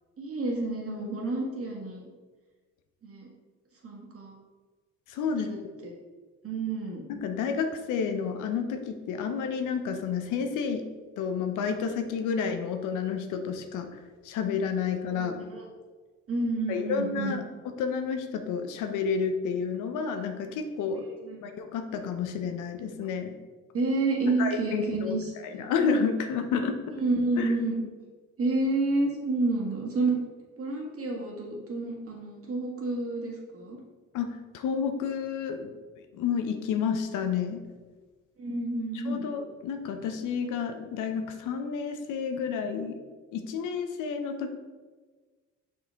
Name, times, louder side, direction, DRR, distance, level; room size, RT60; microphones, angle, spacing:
voice 1, 0.2-2.1 3.0-3.3 3.8-4.3 5.3-5.9 6.4-7.0 15.1-15.7 16.3-17.3 21.0-21.4 23.7-25.7 27.0-27.8 28.4-30.3 30.6-33.8 38.4-39.3, right 2 dB, 50° right, -1 dB, 1.8 m, -30 dB
voice 2, 5.1-5.5 7.1-10.9 11.2-13.9 14.2-15.4 16.7-17.4 17.8-21.0 21.4-23.4 24.4-25.1 25.4-26.8 27.4-27.5 34.1-35.7 36.1-37.6 39.1-43.0 43.3-44.5, left 6 dB, 90° left, 6 dB, 0.7 m, -30 dB
5.9 x 4.8 x 3.4 m, 1.4 s
cardioid pair, 90°, 30 cm